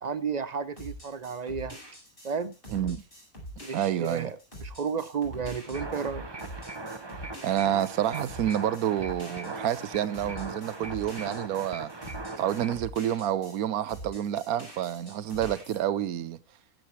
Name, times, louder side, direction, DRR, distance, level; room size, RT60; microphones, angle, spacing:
voice 1, 0.0-1.8 2.2-2.5 3.6-6.3, right 6 dB, 45° right, 0.6 m, -33 dB
sound 1, 0.8-13.6 13.9-15.8, equal, 35° left, 5.6 m, -44 dB
voice 2, 2.7-3.0 3.7-4.3 7.4-11.9 12.4-16.4, right 11 dB, 75° right, 1.2 m, -29 dB
sound 2, 5.7-12.8, right 3 dB, 20° right, 0.9 m, -40 dB
15.0 x 7.8 x 4.5 m
omnidirectional pair, 1.6 m